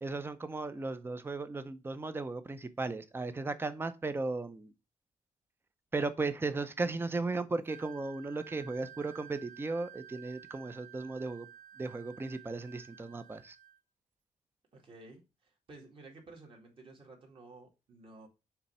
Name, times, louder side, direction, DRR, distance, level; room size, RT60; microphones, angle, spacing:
voice 1, 0.0-4.7 5.9-11.5 11.8-13.6, right 3 dB, 15° right, 0.6 m, -36 dB
Wind instrument woodwind instrument, 7.6-13.8, right 10 dB, 75° right, 0.6 m, -53 dB
voice 2, 14.7-18.3, right 2 dB, 40° right, 2.0 m, -53 dB
6.9 x 3.2 x 5.5 m
wide cardioid pair, 160°, 13 cm